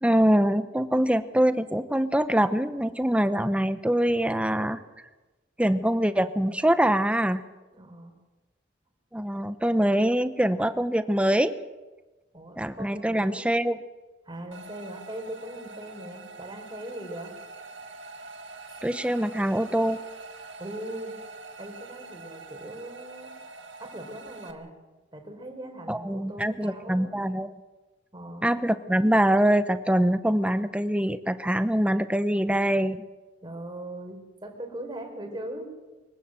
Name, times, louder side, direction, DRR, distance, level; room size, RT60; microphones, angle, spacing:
voice 1, 0.0-4.8 5.6-7.4 9.1-11.5 12.6-13.8 18.8-20.0 25.9-27.5 28.4-33.0, right 1 dB, 5° right, 11 dB, 0.9 m, -24 dB
voice 2, 7.7-8.1 12.3-13.5 14.3-17.4 18.7-18.8 20.6-21.2 21.6-23.3 23.8-24.8 25.1-27.1 28.1-28.5 33.4-35.7, right 1 dB, 25° right, 3 dB, 4.3 m, -40 dB
sound 1, 14.5-24.5, right 3 dB, 75° right, 1.9 m, -45 dB
24.0 x 16.0 x 7.7 m, 1.2 s
head